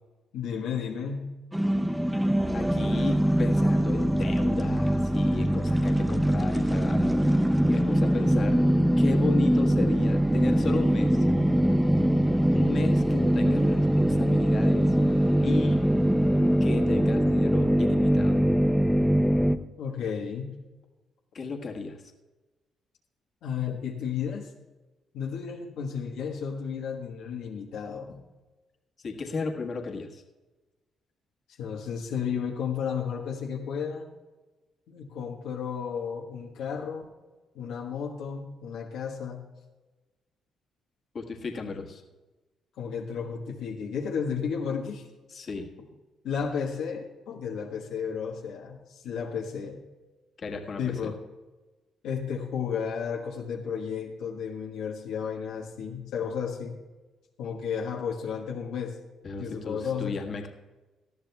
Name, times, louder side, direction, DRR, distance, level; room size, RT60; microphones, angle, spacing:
voice 1, 0.3-1.4 19.8-20.6 23.4-24.5 25.1-28.2 31.6-34.1 34.9-37.1 37.5-39.4 42.8-45.1 46.2-49.8 50.8-51.1 52.0-56.8 57.4-59.0 59.4-60.1, left 7 dB, 85° left, 0 dB, 1.3 m, -33 dB
sound 1, 1.5-19.6, equal, 5° right, 0.5 m, -23 dB
voice 2, 2.5-7.1 7.7-8.6 9.0-11.2 12.5-14.9 15.4-15.8 16.6-18.4 21.3-22.0 29.0-30.2 41.1-42.0 45.3-45.7 50.4-51.1 59.2-60.5, left 4 dB, 50° left, 1 dB, 1.6 m, -34 dB
19.0 x 13.5 x 2.3 m, 1.2 s
cardioid pair, 90°, 0 cm